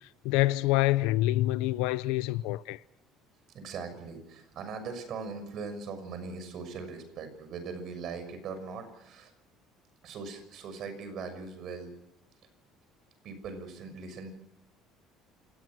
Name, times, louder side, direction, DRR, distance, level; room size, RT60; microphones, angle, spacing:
voice 1, 0.0-2.8, left 16 dB, 90° left, 0.7 m, -27 dB
voice 2, 3.5-9.3 10.0-11.9 13.2-14.3, right 4 dB, 45° right, 6.4 m, -40 dB
28.5 x 19.0 x 6.3 m
cardioid pair, 155°, 0 cm